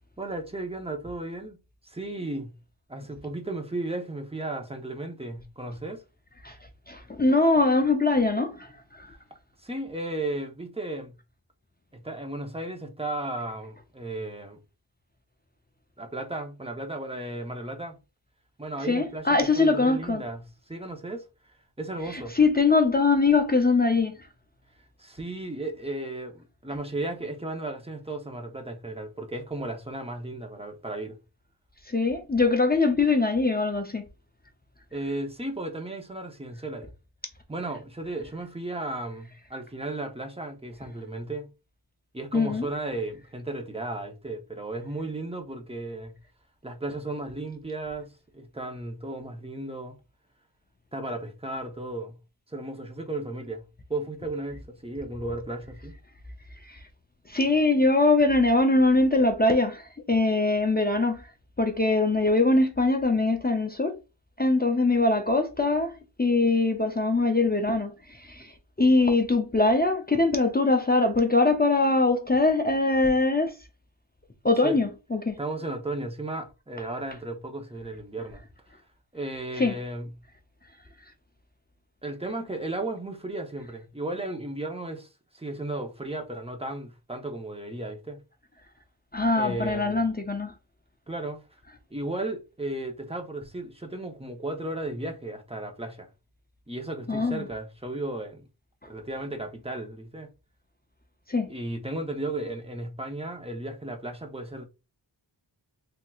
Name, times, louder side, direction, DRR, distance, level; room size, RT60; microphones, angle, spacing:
voice 1, 0.2-1.6 1.8-2.5 2.9-6.0 9.6-11.2 11.9-14.6 16.0-17.9 18.6-19.3 19.6-21.2 21.8-22.4 25.0-31.2 34.9-36.9 37.5-41.5 42.1-46.1 46.6-49.9 50.9-52.2 52.5-53.6 53.9-55.9 74.6-74.8 75.4-78.4 79.1-80.1 82.0-85.1 85.3-88.2 89.4-90.0 91.1-91.4 91.9-96.1 96.7-98.4 98.9-100.3 101.5-104.6, right 2 dB, 15° right, 0.8 m, -34 dB
voice 2, 6.9-9.1 18.9-20.2 22.1-24.1 31.9-34.0 42.3-42.7 56.7-56.8 57.3-61.2 61.6-63.9 64.4-65.9 66.2-68.5 68.8-73.5 74.4-75.4 79.6-79.8 89.1-90.5 97.1-97.4 101.3-101.5, left 3 dB, 20° left, 0.5 m, -22 dB
3.4 x 2.7 x 2.3 m
wide cardioid pair, 40°, 45 cm